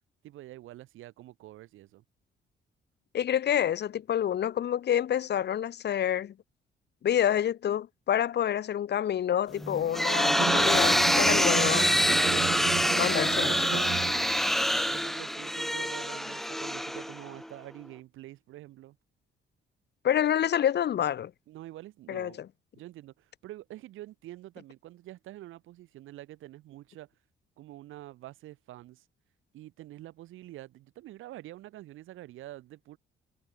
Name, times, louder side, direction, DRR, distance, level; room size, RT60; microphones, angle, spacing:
voice 1, 0.2-2.0 14.0-14.3 14.9-19.0 21.5-22.4 22.7-27.1 27.6-29.1 29.5-33.0, right 15 dB, 90° right, 5.4 m, -46 dB
voice 2, 3.1-6.3 7.0-11.9 13.0-13.8 20.0-21.3 22.1-22.5, left 10 dB, 60° left, 1.1 m, -28 dB
sound 1, 9.6-17.5, equal, ahead, 0.7 m, -26 dB
Bowed string instrument, 10.2-14.5, right 13 dB, 60° right, 0.5 m, -35 dB
cardioid pair, 90°, 20 cm